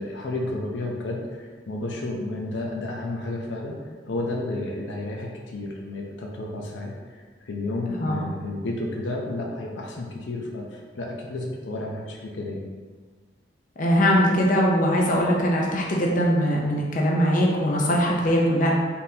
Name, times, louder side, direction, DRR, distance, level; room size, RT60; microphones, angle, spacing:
voice 1, 0.0-3.8 4.0-7.1 7.4-12.7, left 2 dB, 85° left, -1 dB, 0.6 m, -31 dB
voice 2, 13.8-18.7, equal, 45° left, -2 dB, 0.6 m, -21 dB
4.1 x 3.6 x 2.7 m, 1.5 s
head